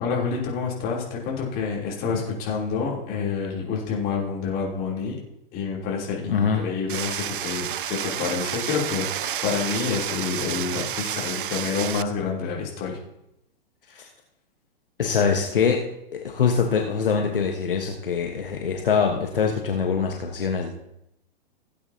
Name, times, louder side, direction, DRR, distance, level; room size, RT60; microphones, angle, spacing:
voice 1, 0.0-5.2 5.5-13.0, left 5 dB, 30° left, -3 dB, 3.3 m, -28 dB
voice 2, 6.3-6.6 11.5-11.6 13.9-14.1 15.0-15.8 16.1-20.7, left 6 dB, 65° left, 2 dB, 1.3 m, -24 dB
sound 1, 6.9-12.0, right 10 dB, 65° right, 0.5 m, -30 dB
17.0 x 8.5 x 2.8 m, 0.82 s
figure-of-eight pair, 110°, 29 cm